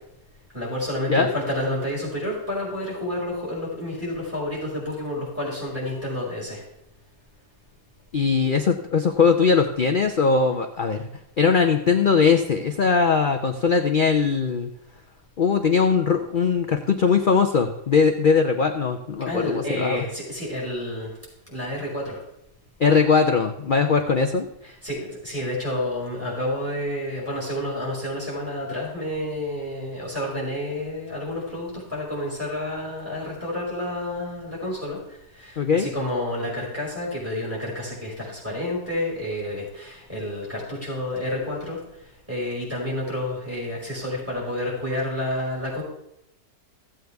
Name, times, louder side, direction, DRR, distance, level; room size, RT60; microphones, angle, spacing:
voice 1, 0.5-6.6 19.2-21.1 21.5-22.2 24.8-35.0 35.4-41.8 42.3-45.8, left 1 dB, 10° right, -4 dB, 5.0 m, -29 dB
voice 2, 8.1-11.1 11.4-14.7 15.4-20.0 22.8-24.5 35.6-35.9, left 5 dB, 70° left, 4 dB, 0.4 m, -20 dB
15.5 x 7.9 x 3.5 m, 0.81 s
omnidirectional pair, 1.8 m